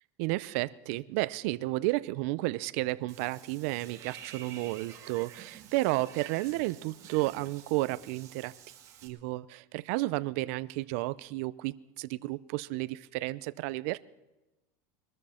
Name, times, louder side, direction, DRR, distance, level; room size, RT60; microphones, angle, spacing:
voice 1, 0.2-8.5 9.0-14.0, right 20 dB, 65° right, 16 dB, 0.5 m, -32 dB
Water / Bathtub (filling or washing), 3.1-9.1, right 9 dB, 40° right, 2.3 m, -50 dB
22.0 x 13.0 x 4.3 m, 1.0 s
supercardioid pair, 145°, 8 cm